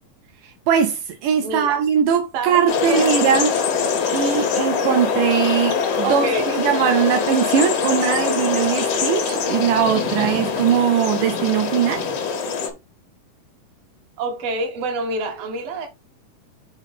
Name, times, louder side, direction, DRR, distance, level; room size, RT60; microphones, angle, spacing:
voice 1, 0.7-3.6 4.1-6.3 6.6-12.0, right 8 dB, 80° right, 2.3 m, -20 dB
voice 2, 1.4-1.8 2.3-3.1 6.0-6.6 14.2-15.9, right 3 dB, 55° right, 2.3 m, -27 dB
sound 1, 2.7-12.7, left 5 dB, 60° left, 2.3 m, -23 dB
5.5 x 5.0 x 4.2 m
omnidirectional pair, 3.8 m